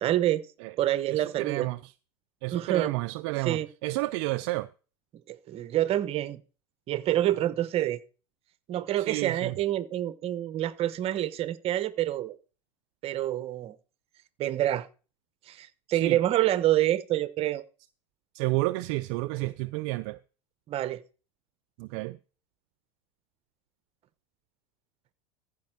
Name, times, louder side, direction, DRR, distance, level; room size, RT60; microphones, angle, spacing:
voice 1, 0.0-0.4 0.8-1.7 2.5-2.9 3.4-3.7 5.3-6.4 6.9-8.0 8.7-12.4 13.0-13.7 14.4-14.9 15.5-17.6 20.7-21.0, right 13 dB, 40° right, 0.9 m, -27 dB
voice 2, 1.1-1.9 2.4-4.7 9.0-9.6 15.9-16.2 18.3-20.2 21.8-22.2, right 21 dB, 60° right, 0.4 m, -31 dB
14.5 x 5.2 x 4.7 m
supercardioid pair, 115°, 16 cm